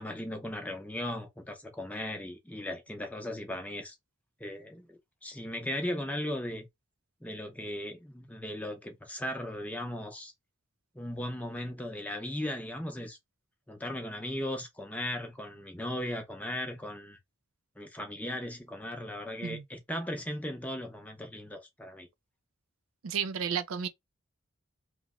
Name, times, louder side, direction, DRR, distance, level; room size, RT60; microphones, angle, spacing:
voice 1, 0.0-4.0 4.4-6.7 7.2-10.3 10.9-13.2 13.7-17.2 17.8-22.1, left 1 dB, 5° left, 0.6 m, -37 dB
voice 2, 23.0-23.9, right 7 dB, 80° right, 0.5 m, -32 dB
3.0 x 2.1 x 3.6 m
head